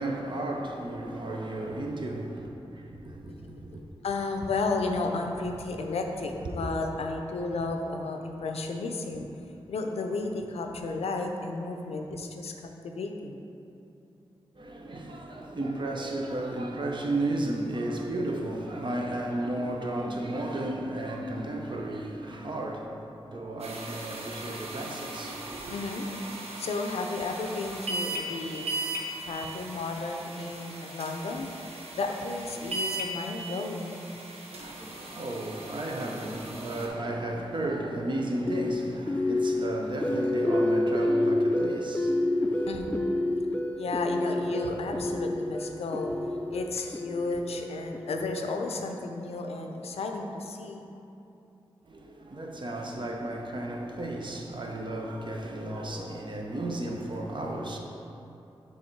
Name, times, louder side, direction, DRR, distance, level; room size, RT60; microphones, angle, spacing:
voice 1, 0.0-3.9 6.4-6.6 14.6-25.7 34.5-43.0 51.9-57.8, right 1 dB, 50° right, 0.7 m, -34 dB
voice 2, 4.0-9.3 9.7-12.5 12.8-13.4 25.7-26.1 26.6-28.7 29.2-31.7 31.9-34.0 42.7-42.9 43.7-46.2 46.5-50.8, left 3 dB, 85° left, 0.5 m, -33 dB
sound 1, 23.6-36.9, right 2 dB, 85° right, 0.7 m, -38 dB
sound 2, 38.5-48.6, left 1 dB, 15° left, 0.4 m, -29 dB
6.3 x 3.4 x 4.6 m
cardioid pair, 55°, 10 cm